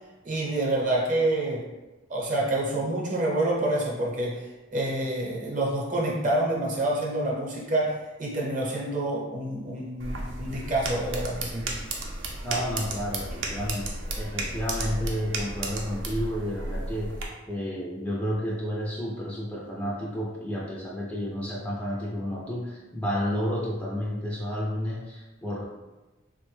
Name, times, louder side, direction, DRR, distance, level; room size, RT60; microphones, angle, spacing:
voice 1, 0.2-1.6 2.1-11.7, right 1 dB, 40° right, -2 dB, 0.7 m, -27 dB
sound 1, 10.0-17.2, right 2 dB, 80° right, 0.5 m, -33 dB
voice 2, 12.4-17.2 17.5-25.6, equal, 5° left, -4 dB, 0.3 m, -31 dB
3.3 x 2.1 x 3.1 m, 1.1 s
head